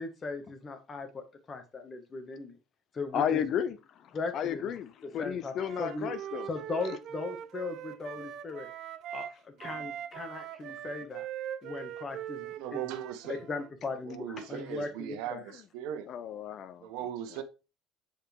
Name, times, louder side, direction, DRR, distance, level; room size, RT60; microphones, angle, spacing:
voice 1, 0.0-2.6 2.9-3.5 4.1-4.6 5.2-6.1 6.5-8.7 9.1-11.3 11.6-12.8 13.3-15.4, left 3 dB, 30° left, 1.7 m, -38 dB
voice 2, 3.1-6.5 16.1-16.9, left 8 dB, 55° left, 0.6 m, -33 dB
Wind instrument woodwind instrument, 5.5-9.3 9.6-13.7, right 11 dB, 55° right, 0.7 m, -41 dB
voice 3, 12.4-13.4 14.0-16.1 16.8-17.4, right 10 dB, 75° right, 1.1 m, -39 dB
5.2 x 4.9 x 4.6 m
supercardioid pair, 95°, 0 cm